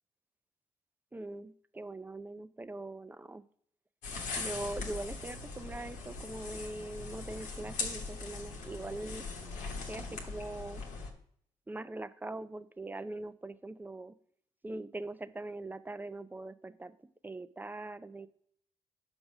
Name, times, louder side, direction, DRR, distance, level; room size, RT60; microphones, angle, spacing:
voice 1, 1.1-3.4 4.4-9.2 9.9-10.8 11.7-14.1 14.6-16.9 17.2-18.3, right 2 dB, 15° right, 14 dB, 0.5 m, -42 dB
sound 1, 4.0-11.1, left 4 dB, 80° left, 1.2 m, -40 dB
5.3 x 4.8 x 6.1 m, 0.65 s
supercardioid pair, 55°, 13 cm